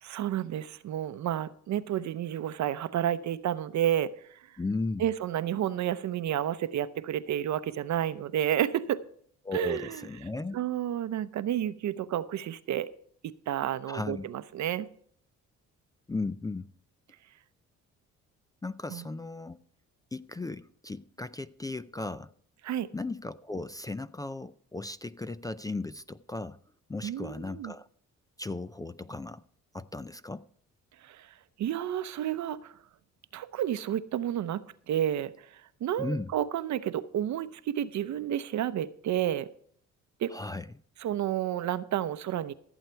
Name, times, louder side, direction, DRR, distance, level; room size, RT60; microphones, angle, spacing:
voice 1, 0.0-4.4 5.0-9.0 9.5-10.0 10.5-12.9 13.5-14.9 18.9-19.0 22.6-22.9 27.0-27.7 31.0-32.7 33.3-39.5 40.2-40.3 41.0-42.5, right 11 dB, 65° right, 0.7 m, -31 dB
voice 2, 4.6-5.0 9.4-10.6 13.9-14.3 16.1-16.7 18.6-19.6 20.1-22.3 22.9-26.6 26.9-27.9 28.4-29.4 29.7-30.5 36.0-36.3 40.3-40.7, left 3 dB, 15° left, 0.3 m, -36 dB
14.5 x 8.2 x 4.5 m
cardioid pair, 90°, 30 cm